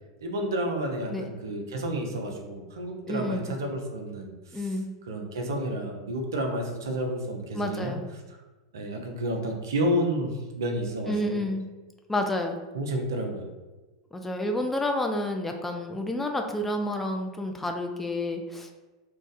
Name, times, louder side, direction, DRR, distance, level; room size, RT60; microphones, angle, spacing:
voice 1, 0.2-4.3 5.1-8.0 8.7-11.4 12.7-13.5, right 1 dB, 65° right, 2 dB, 0.6 m, -30 dB
voice 2, 3.1-3.5 4.5-4.9 7.5-8.1 11.1-11.7 12.1-12.6 14.1-18.7, left 1 dB, 10° left, 3 dB, 0.3 m, -29 dB
2.5 x 2.3 x 3.8 m, 1.2 s
figure-of-eight pair, 85°, 2 cm